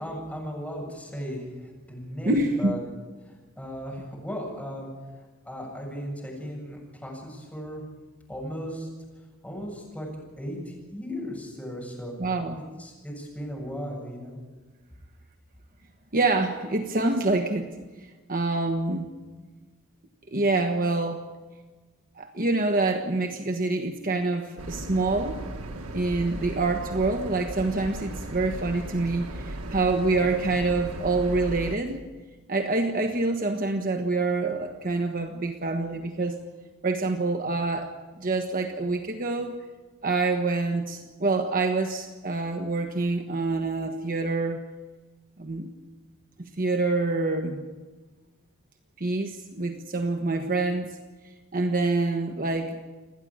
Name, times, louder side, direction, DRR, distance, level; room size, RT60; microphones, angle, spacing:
voice 1, 0.0-2.8 3.2-4.9 5.1-7.8 8.3-8.9 9.4-10.1 10.4-12.1 12.8-14.4, equal, 5° left, -2 dB, 7.6 m, -36 dB
voice 2, 2.2-2.7 12.2-12.6 16.1-17.8 18.3-19.1 20.3-21.2 22.2-25.4 25.9-32.0 32.5-36.4 36.8-39.6 40.0-44.6 45.4-45.7 46.4-47.7 49.0-51.0 51.5-52.8, right 3 dB, 40° right, 5 dB, 1.3 m, -26 dB
sound 1, 24.6-31.8, right 1 dB, 80° right, 1.8 m, -36 dB
29.5 x 11.0 x 8.7 m, 1.3 s
head